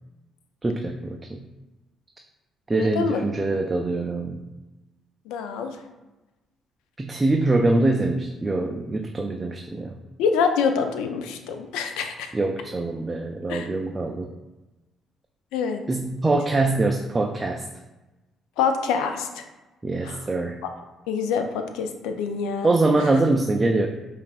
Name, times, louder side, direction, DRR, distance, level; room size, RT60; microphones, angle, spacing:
voice 1, 0.6-1.4 2.7-4.4 7.0-9.9 12.3-14.3 15.9-17.6 19.8-20.6 22.6-23.9, right 2 dB, 25° right, 3 dB, 0.3 m, -23 dB
voice 2, 2.7-3.2 5.3-5.8 10.2-12.3 13.5-13.7 15.5-15.8 18.6-19.4 20.0-20.2 20.6-20.7 21.1-22.7, left 6 dB, 85° left, 6 dB, 0.3 m, -26 dB
5.3 x 2.4 x 2.3 m, 1.1 s
supercardioid pair, 70°, 0 cm